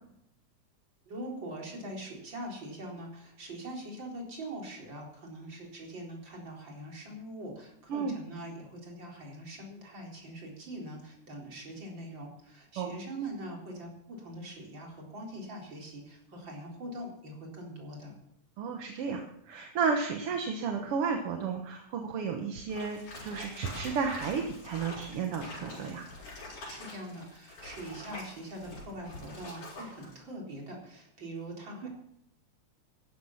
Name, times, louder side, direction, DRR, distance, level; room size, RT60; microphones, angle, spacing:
voice 1, 1.1-18.1 26.7-31.9, right 1 dB, 40° right, -1 dB, 4.6 m, -43 dB
voice 2, 18.6-26.1 31.8-31.9, right 5 dB, 55° right, 3 dB, 2.0 m, -33 dB
sound 1, 22.7-30.2, left 2 dB, 85° left, 7.1 m, -46 dB
14.5 x 12.0 x 5.8 m, 0.78 s
omnidirectional pair, 3.4 m